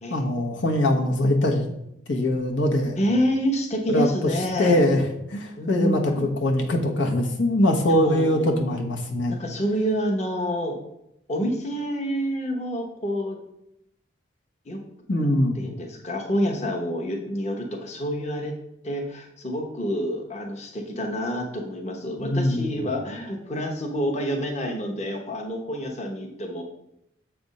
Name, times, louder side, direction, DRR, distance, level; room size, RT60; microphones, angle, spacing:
voice 1, 0.1-1.7 2.1-3.0 3.9-4.1 4.6-5.1 5.3-9.4 15.1-15.6 22.2-22.7, left 1 dB, 80° left, 1 dB, 1.1 m, -22 dB
voice 2, 3.0-4.9 5.6-6.3 7.9-8.6 9.3-10.8 11.3-13.4 14.7-14.8 15.1-18.5 18.8-26.6, equal, 35° left, 2 dB, 1.0 m, -28 dB
7.4 x 3.5 x 5.3 m, 0.80 s
head